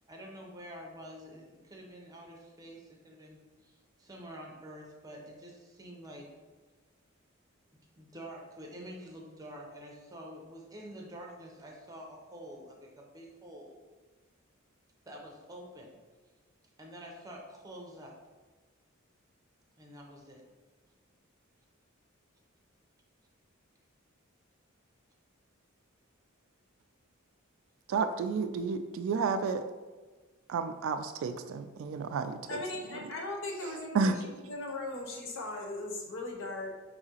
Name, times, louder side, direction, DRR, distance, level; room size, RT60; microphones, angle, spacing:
voice 1, 0.1-3.7 4.0-6.3 7.7-13.8 15.1-16.0 16.8-18.1 19.8-20.4, equal, 20° right, -1 dB, 0.6 m, -47 dB
voice 2, 27.9-29.6 30.5-32.6 33.9-34.2, right 5 dB, 70° right, 10 dB, 0.3 m, -31 dB
voice 3, 32.5-36.7, left 2 dB, 65° left, 1 dB, 0.7 m, -38 dB
4.8 x 2.7 x 2.8 m, 1.3 s
head